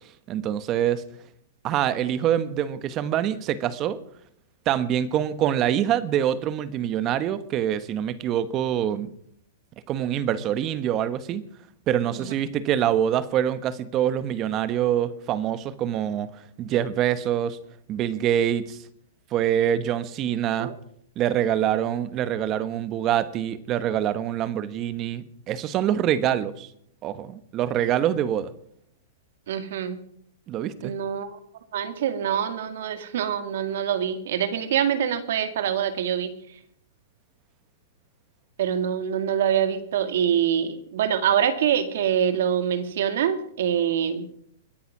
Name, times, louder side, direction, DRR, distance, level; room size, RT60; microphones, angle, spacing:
voice 1, 0.3-1.0 1.6-4.0 4.6-9.1 9.9-11.4 11.9-17.6 17.9-18.8 19.3-20.7 21.2-26.7 27.0-28.5 30.5-31.0, right 10 dB, 30° right, 15 dB, 1.1 m, -25 dB
voice 2, 29.5-30.0 30.8-31.4 31.7-36.3 38.6-44.2, right 9 dB, 65° right, 10 dB, 2.0 m, -25 dB
22.5 x 9.9 x 6.1 m, 0.67 s
hypercardioid pair, 145°, 0 cm